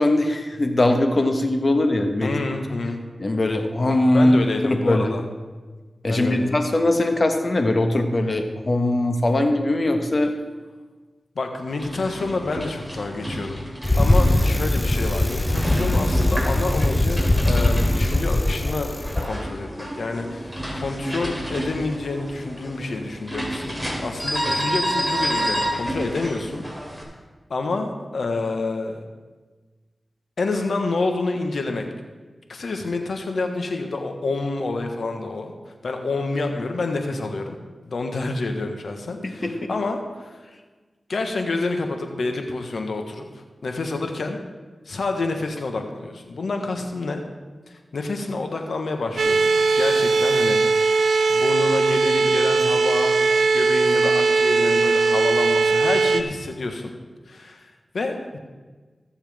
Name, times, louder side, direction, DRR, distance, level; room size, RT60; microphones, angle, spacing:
voice 1, 0.0-2.3 3.2-4.4 4.7-5.1 6.0-10.3 39.4-39.7, left 1 dB, 50° left, 5 dB, 1.5 m, -20 dB
voice 2, 2.2-3.0 4.1-5.2 6.1-6.6 11.3-13.6 14.0-18.9 19.2-26.6 27.5-29.0 30.4-31.8 32.5-37.6 37.8-40.4 41.1-44.4 44.8-47.2 47.7-51.0 51.3-56.9 57.3-58.4, left 3 dB, 80° left, 4 dB, 1.4 m, -28 dB
sound 1, 11.7-27.0, equal, 5° left, 3.4 m, -30 dB
Bicycle, 13.8-19.3, left 1 dB, 20° left, 0.9 m, -21 dB
sound 2, 49.2-56.2, right 3 dB, 80° right, 0.6 m, -19 dB
19.5 x 7.3 x 3.6 m, 1.3 s
cardioid pair, 45°, 0 cm